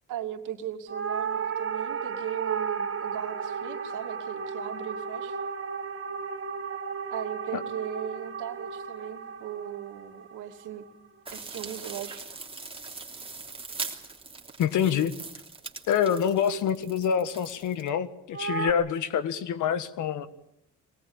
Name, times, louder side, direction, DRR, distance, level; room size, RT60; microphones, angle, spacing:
voice 1, 0.1-5.4 7.1-10.8 11.3-12.3, right 10 dB, 85° right, 5 dB, 2.8 m, -37 dB
sound 1, 0.9-11.4 18.3-18.7, right 6 dB, 45° right, 2.8 m, -34 dB
sound 2, 11.3-17.9, right 3 dB, 20° right, 3.2 m, -41 dB
voice 2, 14.6-15.1 15.9-20.3, left 8 dB, 80° left, 14 dB, 1.7 m, -26 dB
23.0 x 20.0 x 8.9 m, 0.75 s
cardioid pair, 90°, 30 cm